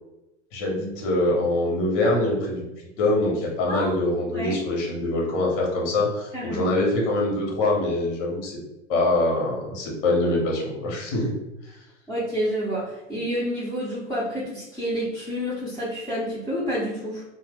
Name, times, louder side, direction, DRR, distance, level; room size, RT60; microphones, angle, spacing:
voice 1, 0.5-8.6 8.9-11.4 11.6-11.7, left 2 dB, 50° left, -1 dB, 1.1 m, -24 dB
voice 2, 6.3-6.7 12.1-17.2, equal, 5° left, -12 dB, 1.0 m, -29 dB
2.7 x 2.1 x 3.4 m, 0.96 s
hypercardioid pair, 85°, 38 cm